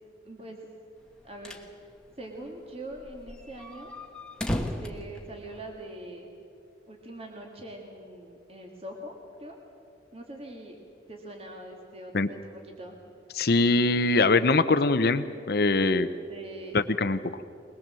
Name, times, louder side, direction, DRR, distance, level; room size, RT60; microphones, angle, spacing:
voice 1, 0.2-0.7 1.2-1.6 2.2-3.9 4.5-6.3 6.9-9.6 10.1-10.8 11.1-13.0 15.9-16.8, right 1 dB, 35° right, 1 dB, 2.1 m, -43 dB
sound 1, 1.1-1.7 2.0-2.1 2.3-2.4 2.9-5.9, left 1 dB, 5° left, 1.3 m, -35 dB
voice 2, 13.4-16.1 16.7-17.2, left 3 dB, 55° left, 10 dB, 0.7 m, -22 dB
22.0 x 21.0 x 7.6 m, 2.5 s
head